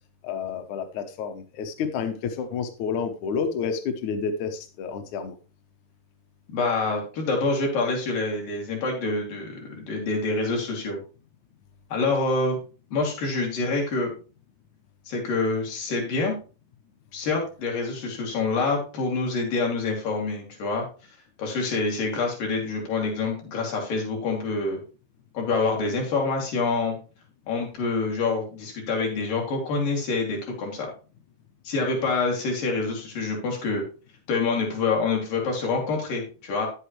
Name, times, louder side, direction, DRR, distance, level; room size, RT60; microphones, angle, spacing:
voice 1, 0.2-5.3, left 6 dB, 75° left, 6 dB, 2.0 m, -30 dB
voice 2, 6.5-11.0 11.9-12.6 12.9-14.2 15.1-16.3 17.1-20.9 21.4-24.8 25.3-27.0 27.5-30.9 31.7-33.8 34.3-36.7, left 3 dB, 90° left, 0 dB, 4.0 m, -26 dB
9.0 x 8.2 x 3.0 m, 0.33 s
omnidirectional pair, 3.7 m